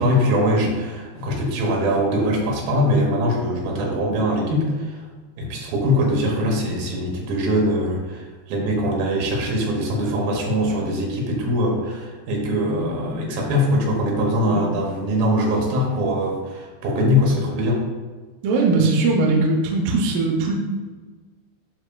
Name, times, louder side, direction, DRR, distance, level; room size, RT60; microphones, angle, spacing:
voice 1, 0.0-5.0 5.4-17.8, equal, 70° right, -1 dB, 2.6 m, -22 dB
voice 2, 18.4-20.5, right 3 dB, 85° right, 0 dB, 1.9 m, -20 dB
12.0 x 4.1 x 2.3 m, 1.4 s
omnidirectional pair, 5.1 m